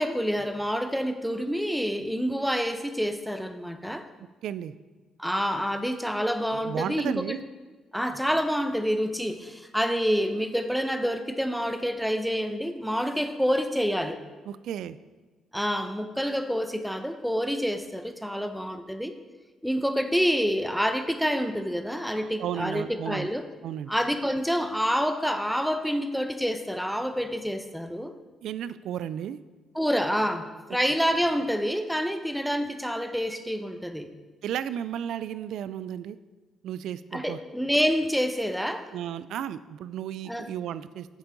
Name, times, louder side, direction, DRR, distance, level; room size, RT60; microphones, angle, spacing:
voice 1, 0.0-4.1 5.2-7.4 7.9-14.2 15.5-19.2 19.6-23.4 23.9-28.1 29.7-34.1 37.1-38.9 40.3-40.5, equal, ahead, 9 dB, 0.7 m, -27 dB
voice 2, 4.4-4.7 6.5-7.4 14.5-15.0 22.1-23.3 23.6-23.9 28.4-29.4 34.4-36.2 36.6-37.4 38.9-41.1, right 10 dB, 80° right, 15 dB, 0.3 m, -34 dB
8.5 x 7.2 x 3.9 m, 1.3 s
cardioid pair, 90°, 0 cm